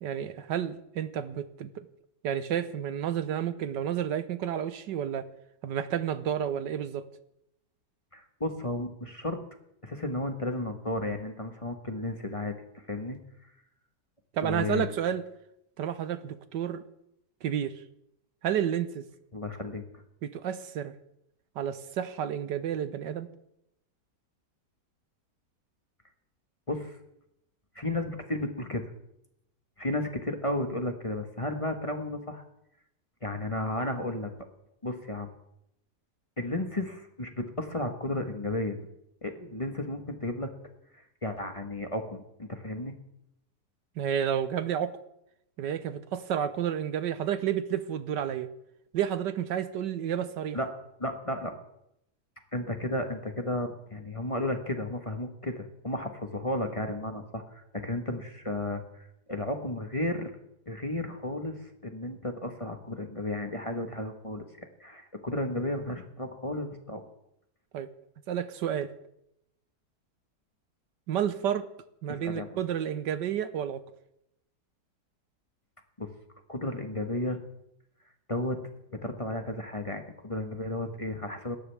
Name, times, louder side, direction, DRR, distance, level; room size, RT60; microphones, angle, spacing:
voice 1, 0.0-1.9 2.2-5.3 5.6-7.1 14.3-15.2 15.8-16.8 17.4-17.8 18.4-19.0 20.2-20.9 21.6-23.3 44.0-45.0 45.6-48.5 48.9-50.6 67.7-67.9 68.3-68.9 71.1-71.7 72.0-73.8, right 9 dB, 80° right, 12 dB, 1.5 m, -30 dB
voice 2, 8.1-9.4 9.8-13.2 14.4-14.9 19.3-20.0 26.7-27.0 27.7-28.9 29.8-32.4 33.2-34.3 34.8-35.3 36.4-38.8 39.2-40.5 40.9-42.9 50.5-50.7 51.0-51.5 52.5-60.3 60.7-67.0 72.1-72.6 76.0-76.1 76.5-77.4 78.3-78.6 78.9-81.6, left 1 dB, 20° left, 5 dB, 1.2 m, -33 dB
27.5 x 13.5 x 3.5 m, 0.81 s
omnidirectional pair, 1.9 m